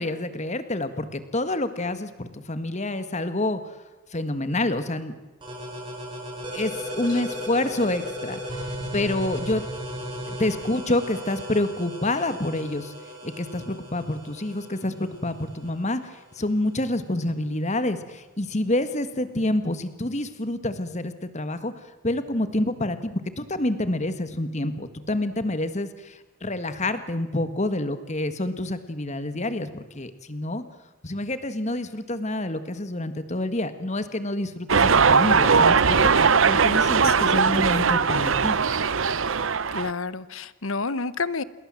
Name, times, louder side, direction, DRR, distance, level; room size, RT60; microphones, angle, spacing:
voice 1, 0.0-3.6 4.1-5.1 6.5-8.4 8.9-9.6 10.3-12.9 13.2-21.7 22.0-30.6 31.0-38.6, left 1 dB, 35° left, 11 dB, 1.7 m, -28 dB
sound 1, 5.4-16.8, equal, 20° right, 7.5 m, -36 dB
sound 2, 34.7-39.9, right 5 dB, 60° right, 0.8 m, -19 dB
voice 2, 37.0-37.7 39.7-41.4, left 4 dB, 65° left, 17 dB, 1.1 m, -30 dB
28.0 x 21.0 x 7.6 m, 1.1 s
head